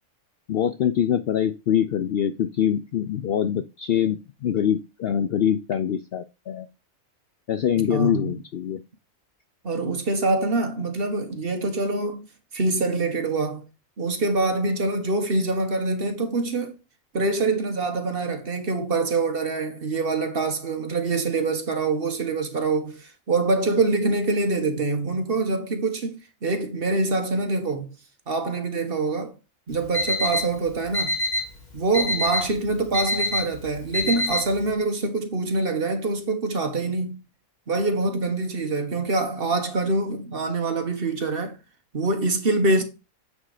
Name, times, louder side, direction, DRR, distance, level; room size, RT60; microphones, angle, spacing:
voice 1, 0.5-6.7 7.5-8.8, left 9 dB, 65° left, 0.6 m, -24 dB
voice 2, 7.7-8.4 9.6-12.3 12.5-13.6 14.0-16.8 17.1-27.9 28.3-29.4 29.7-31.2 31.7-37.2 37.7-41.6 41.9-42.8, right 3 dB, 45° right, 1.3 m, -25 dB
Alarm, 29.7-34.7, left 1 dB, 30° left, 1.6 m, -27 dB
8.2 x 3.9 x 4.8 m
omnidirectional pair, 1.5 m